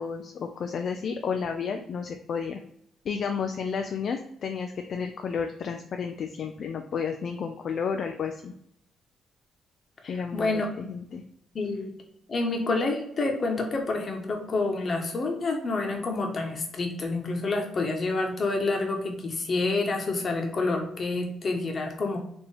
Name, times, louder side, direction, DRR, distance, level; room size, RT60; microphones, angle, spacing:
voice 1, 0.0-2.6 3.0-8.5 10.1-11.2, left 6 dB, 60° left, 5 dB, 0.4 m, -32 dB
voice 2, 10.0-10.7 11.5-11.9 12.3-22.2, left 3 dB, 45° left, 2 dB, 1.0 m, -28 dB
4.4 x 2.8 x 3.3 m, 0.73 s
cardioid pair, 90°, 0 cm